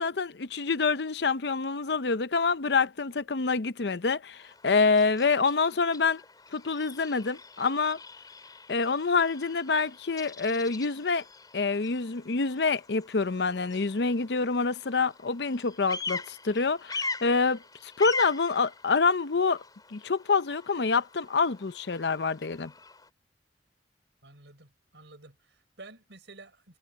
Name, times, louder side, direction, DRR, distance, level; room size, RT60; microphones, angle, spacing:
voice 1, 0.0-6.2 6.5-8.0 8.7-11.2 11.5-19.6 19.9-22.7, left 4 dB, 65° left, 0.7 m, -27 dB
Bird vocalization bird call bird song, 4.3-23.1, left 3 dB, 20° left, 4.4 m, -42 dB
voice 2, 24.2-26.8, right 3 dB, 80° right, 4.9 m, -51 dB
head